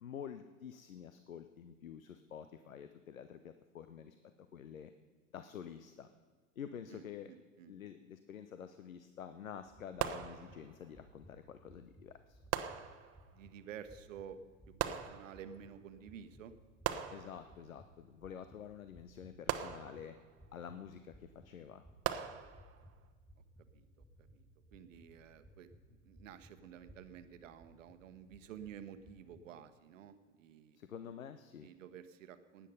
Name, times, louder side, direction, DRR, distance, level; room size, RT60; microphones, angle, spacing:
voice 1, 0.0-4.2 4.5-4.9 5.3-6.1 6.6-7.3 7.7-12.4 17.1-20.2 20.5-21.8 30.7-31.7, left 8 dB, 85° left, 10 dB, 0.7 m, -49 dB
voice 2, 6.9-7.7 13.3-14.4 14.9-16.5 23.7-23.9 24.3-24.4 24.7-30.8 31.6-32.7, right 8 dB, 70° right, 10 dB, 1.1 m, -51 dB
sound 1, 9.6-29.4, equal, ahead, 3.0 m, -62 dB
sound 2, 10.0-10.9 12.5-13.4 14.8-15.7 16.8-17.8 19.5-20.4 22.0-22.9, right 11 dB, 35° right, 1.0 m, -40 dB
16.5 x 10.0 x 5.5 m, 1.5 s
hypercardioid pair, 85°, 40 cm